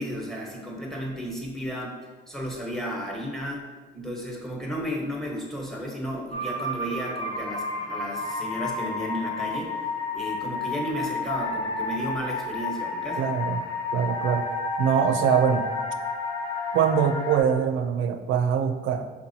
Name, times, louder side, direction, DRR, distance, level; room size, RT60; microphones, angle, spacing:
voice 1, 0.0-2.0 2.3-13.2, equal, ahead, -1 dB, 1.1 m, -33 dB
sound 1, 6.3-17.4, left 3 dB, 25° left, 0.8 m, -31 dB
voice 2, 13.2-13.7 13.9-14.5 14.8-15.7 16.7-19.1, right 7 dB, 80° right, 8 dB, 0.4 m, -23 dB
4.6 x 3.6 x 2.7 m, 1.3 s
cardioid pair, 90°, 20 cm